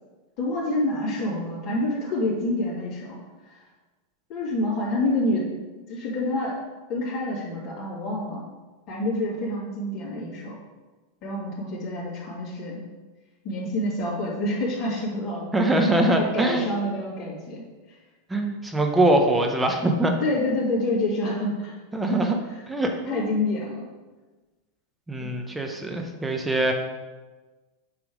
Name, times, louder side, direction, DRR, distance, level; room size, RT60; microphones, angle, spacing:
voice 1, 0.4-3.2 3.5-3.6 4.3-5.5 5.9-6.6 6.9-8.4 8.9-10.5 11.2-12.8 13.4-15.7 16.1-17.6 20.2-21.8 22.1-22.3 23.1-23.8, left 1 dB, 45° left, -5 dB, 2.7 m, -27 dB
voice 2, 15.5-16.7 18.3-20.1 21.9-22.4 22.7-23.3 25.1-26.7, right 1 dB, 10° right, 3 dB, 1.0 m, -23 dB
8.4 x 3.4 x 6.3 m, 1.2 s
supercardioid pair, 125°, 0 cm